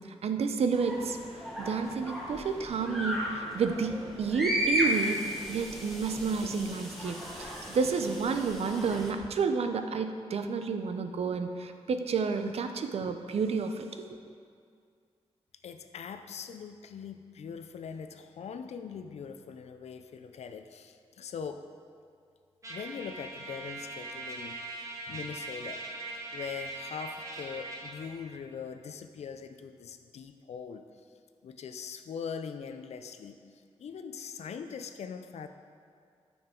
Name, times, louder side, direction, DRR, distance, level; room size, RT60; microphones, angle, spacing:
voice 1, 0.2-5.2 5.5-14.1, right 5 dB, 70° right, 7 dB, 0.6 m, -30 dB
sound 1, 0.7-9.1, equal, ahead, 1.4 m, -35 dB
voice 2, 15.6-21.6 22.7-24.6 25.1-25.8 26.3-30.8 31.4-33.4 33.8-35.5, left 6 dB, 85° left, 8 dB, 0.6 m, -41 dB
Trumpet, 22.6-28.0, right 3 dB, 30° right, 1.5 m, -41 dB
13.0 x 5.7 x 4.4 m, 2.2 s
wide cardioid pair, 140°, 11 cm